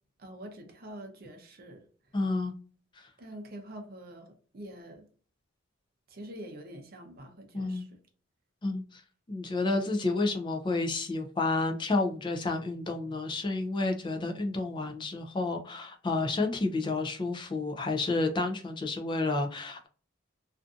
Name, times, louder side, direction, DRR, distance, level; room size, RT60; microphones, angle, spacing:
voice 1, 0.2-2.2 3.2-5.1 6.1-8.0, right 1 dB, 45° right, 0.6 m, -46 dB
voice 2, 2.1-2.5 3.0-3.1 7.5-7.9 8.6-9.0 9.3-19.9, left 3 dB, 20° left, 0.3 m, -30 dB
2.5 x 2.5 x 2.3 m
head